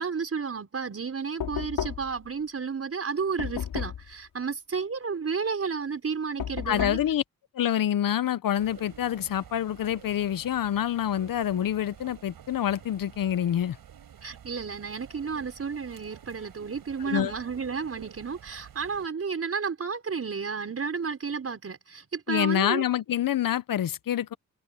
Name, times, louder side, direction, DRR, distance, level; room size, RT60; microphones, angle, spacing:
voice 1, 0.0-7.0 14.2-22.8, right 5 dB, 40° right, 5.6 m, -32 dB
Knock, 1.4-2.3 3.4-4.1 6.4-7.1, left 9 dB, 80° left, 6.1 m, -33 dB
voice 2, 6.7-7.2 7.5-13.8 17.0-17.3 22.3-24.3, left 11 dB, 60° left, 0.9 m, -27 dB
sound 1, 8.6-19.1, right 9 dB, 70° right, 5.1 m, -50 dB
cardioid pair, 95°, 37 cm